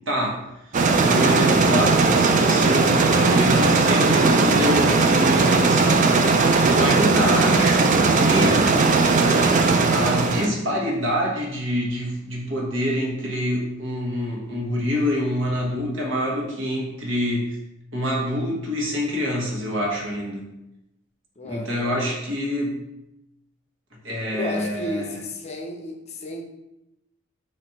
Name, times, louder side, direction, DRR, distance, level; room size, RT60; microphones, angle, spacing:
voice 1, 0.1-0.4 1.0-8.7 9.9-17.6 17.9-20.4 21.4-22.8 24.0-25.1, equal, 65° right, -3 dB, 1.2 m, -26 dB
sound 1, 0.7-10.5, right 3 dB, 40° right, 0.3 m, -18 dB
voice 2, 21.4-22.0 24.3-26.4, left 1 dB, 35° left, 3 dB, 0.6 m, -33 dB
4.1 x 2.6 x 4.4 m, 0.89 s
head